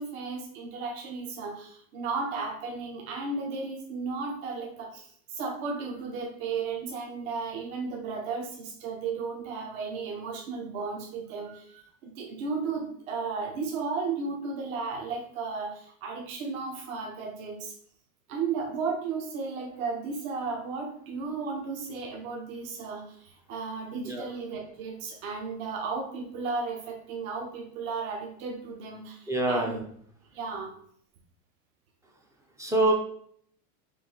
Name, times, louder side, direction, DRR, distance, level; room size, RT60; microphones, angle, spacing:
voice 1, 0.0-17.8 18.3-29.8 30.3-30.7, right 4 dB, 70° right, 1 dB, 1.1 m, -34 dB
voice 2, 29.3-29.8 32.6-32.9, right 1 dB, 10° right, 1 dB, 0.3 m, -25 dB
5.2 x 2.6 x 3.7 m, 0.64 s
supercardioid pair, 120°, 43 cm